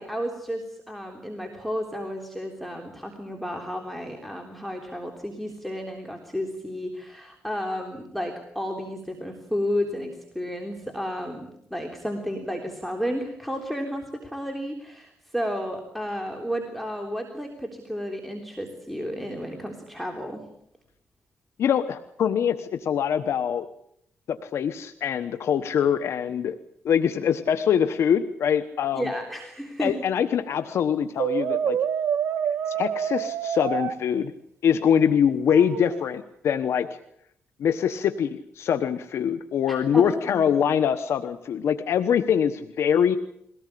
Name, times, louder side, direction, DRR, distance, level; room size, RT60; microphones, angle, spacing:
voice 1, 0.0-20.4 28.9-30.0 39.7-40.6, equal, ahead, 2 dB, 3.6 m, -32 dB
voice 2, 21.6-23.7 24.3-26.6 26.8-29.1 29.8-31.8 32.7-34.3 34.6-36.9 37.6-43.2, left 8 dB, 75° left, 10 dB, 1.1 m, -23 dB
Brass instrument, 31.2-34.0 35.5-36.1, right 8 dB, 70° right, 1.6 m, -27 dB
22.5 x 18.0 x 8.5 m, 0.71 s
cardioid pair, 85°, 5 cm